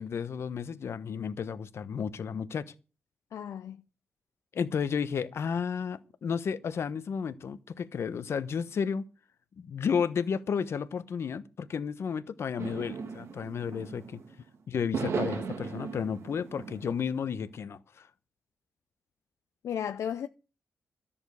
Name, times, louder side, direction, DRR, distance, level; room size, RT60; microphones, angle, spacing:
voice 1, 0.0-2.7 4.5-9.1 9.6-14.2 14.7-18.1, left 6 dB, 60° left, 1.1 m, -32 dB
voice 2, 3.3-3.8 19.6-20.3, left 9 dB, 80° left, 0.5 m, -34 dB
sound 1, 12.6-14.3 14.9-17.2, right 5 dB, 65° right, 1.6 m, -36 dB
13.5 x 7.0 x 6.9 m
wide cardioid pair, 150°, 5 cm